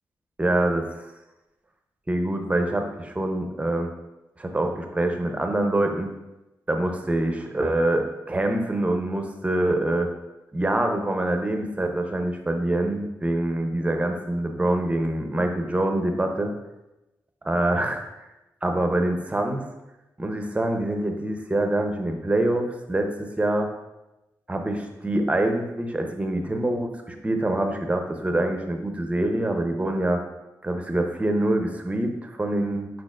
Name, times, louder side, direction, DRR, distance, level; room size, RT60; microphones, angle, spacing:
voice 1, 0.4-0.9 2.1-3.9 4.4-6.1 6.7-10.1 10.5-16.5 17.4-18.0 18.6-19.7 20.2-23.7 24.5-30.2 30.6-32.9, right 1 dB, 20° right, 4 dB, 0.6 m, -25 dB
4.7 x 4.1 x 2.4 m, 0.99 s
cardioid pair, 70°, 7 cm